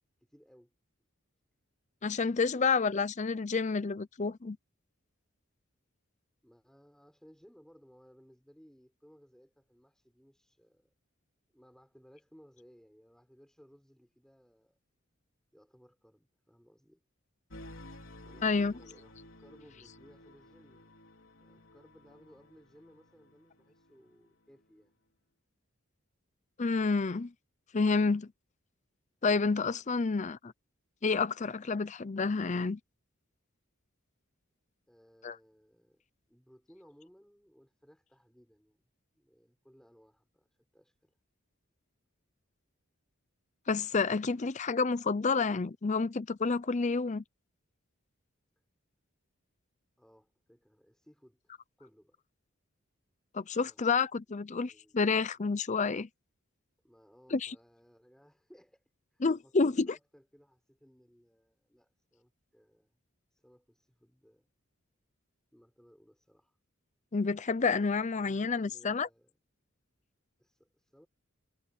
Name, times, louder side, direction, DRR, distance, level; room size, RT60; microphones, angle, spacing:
voice 1, 0.2-0.7 6.4-10.9 11.5-14.8 15.5-17.0 18.2-21.0 21.4-24.9 34.9-36.0 36.3-38.9 39.1-41.2 50.0-51.4 51.8-52.2 53.3-53.8 54.3-55.4 56.8-58.8 59.1-63.0 63.3-64.5 65.5-66.6 67.9-69.3 70.4-71.1, equal, 5° left, 6.5 m, -61 dB
voice 2, 2.0-4.6 18.4-18.7 26.6-27.3 27.7-28.3 29.2-30.5 31.0-32.8 35.2-35.4 43.7-47.2 53.3-56.1 57.3-57.5 59.2-59.9 67.1-69.1, left 4 dB, 35° left, 0.6 m, -29 dB
sound 1, 17.5-24.3, left 1 dB, 65° left, 5.0 m, -53 dB
head